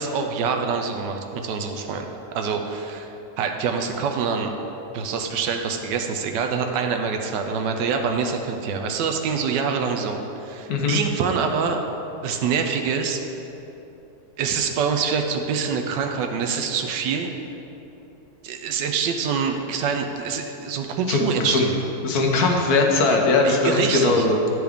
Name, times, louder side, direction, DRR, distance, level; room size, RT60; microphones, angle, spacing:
voice 1, 0.0-2.1 2.3-3.1 3.4-4.5 4.9-13.2 14.4-17.3 18.4-21.7 23.1-23.2 23.4-24.3, right 6 dB, 90° right, 4 dB, 1.2 m, -25 dB
voice 2, 10.7-11.0 21.1-21.7 22.0-24.4, left 3 dB, 65° left, 1 dB, 1.2 m, -20 dB
10.0 x 4.7 x 3.5 m, 3.0 s
omnidirectional pair, 1.8 m